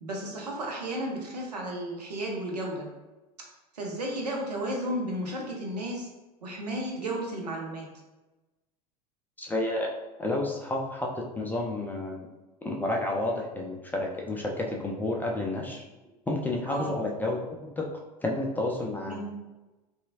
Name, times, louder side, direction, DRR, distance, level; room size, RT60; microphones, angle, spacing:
voice 1, 0.0-2.9 3.7-6.1 6.4-7.9 16.7-17.0 19.0-19.5, right 1 dB, 75° right, -1 dB, 0.7 m, -33 dB
voice 2, 9.4-9.9 10.2-12.3 12.6-15.8 16.3-17.9 18.2-19.2, left 2 dB, 10° left, -1 dB, 0.3 m, -30 dB
2.7 x 2.3 x 2.8 m, 1.1 s
figure-of-eight pair, 75°, 21 cm